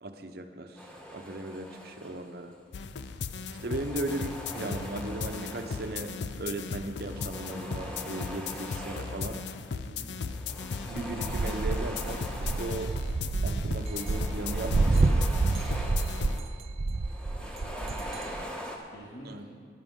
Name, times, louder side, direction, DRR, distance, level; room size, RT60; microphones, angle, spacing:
voice 1, 0.0-2.5 3.6-6.1 6.4-9.4 10.9-12.9 13.4-15.3 19.3-19.4, right 2 dB, 60° right, 6 dB, 0.8 m, -37 dB
sound 1, 0.8-2.6 3.4-6.4 6.9-9.7 10.2-13.2 13.6-16.6 16.9-18.8, equal, 5° left, 1.2 m, -43 dB
sound 2, 2.7-16.4, left 5 dB, 75° left, 0.5 m, -37 dB
voice 2, 9.8-10.1 17.4-18.6 18.9-19.5, equal, 55° left, -8 dB, 2.3 m, -48 dB
sound 3, 10.9-18.4, right 3 dB, 35° right, 0.3 m, -28 dB
16.0 x 10.0 x 3.7 m, 2.1 s
head